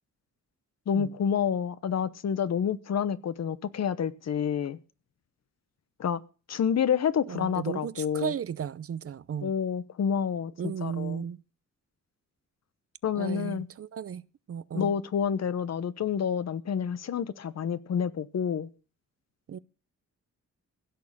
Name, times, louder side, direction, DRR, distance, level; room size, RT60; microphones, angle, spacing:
voice 1, 0.9-4.8 6.0-6.2 6.5-8.3 9.4-11.2 13.0-13.7 14.7-18.7, left 7 dB, 60° left, 1.0 m, -28 dB
voice 2, 7.3-9.5 10.6-11.4 13.1-14.2 14.5-14.9 19.5-19.6, right 8 dB, 50° right, 0.6 m, -34 dB
16.0 x 6.4 x 8.6 m
wide cardioid pair, 120°, 30 cm